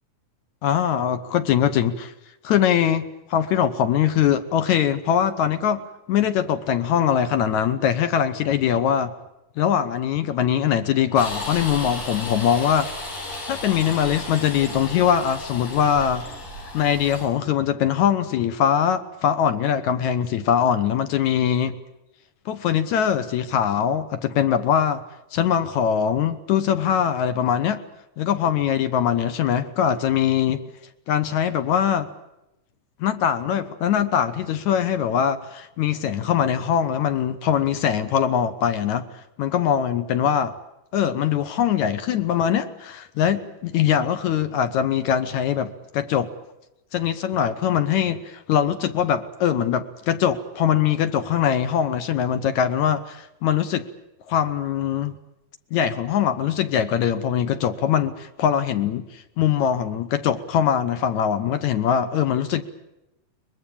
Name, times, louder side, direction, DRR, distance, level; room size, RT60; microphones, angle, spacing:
voice 1, 0.6-2.1 2.4-5.8 6.1-9.1 9.6-12.9 13.5-16.3 16.7-21.8 22.5-25.0 25.3-27.8 28.2-30.6 31.1-32.1 33.0-39.1 39.4-40.5 40.9-46.3 46.9-53.9 54.3-55.2 55.7-62.6, left 9 dB, 70° left, 11 dB, 2.2 m, -22 dB
sound 1, 11.1-17.3, left 2 dB, 90° left, 7.7 m, -34 dB
23.5 x 21.0 x 8.7 m, 0.90 s
omnidirectional pair, 3.8 m